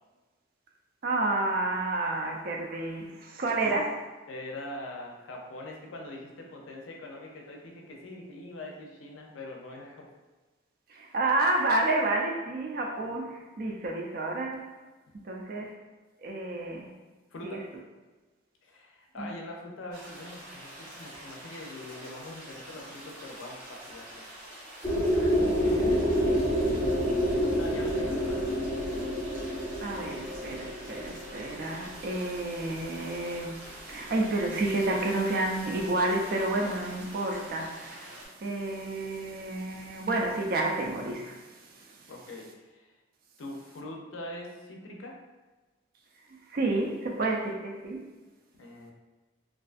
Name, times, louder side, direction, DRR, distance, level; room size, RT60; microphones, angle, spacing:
voice 1, 1.0-4.0 10.9-14.7 15.1-15.7 16.2-17.0 17.4-17.6 19.2-19.3 25.4-26.0 29.8-42.1 46.5-48.0, right 2 dB, 50° right, 1 dB, 0.4 m, -30 dB
voice 2, 4.3-10.1 17.3-17.6 18.6-24.3 25.6-26.1 26.7-28.4 42.1-42.8 43.4-45.2 48.6-48.9, left 1 dB, 90° left, 0 dB, 0.5 m, -43 dB
sound 1, 19.9-38.3, right 1 dB, 75° right, 1.0 m, -46 dB
sound 2, 24.8-32.7, equal, 20° left, 0.4 m, -28 dB
2.5 x 2.3 x 2.4 m, 1.2 s
head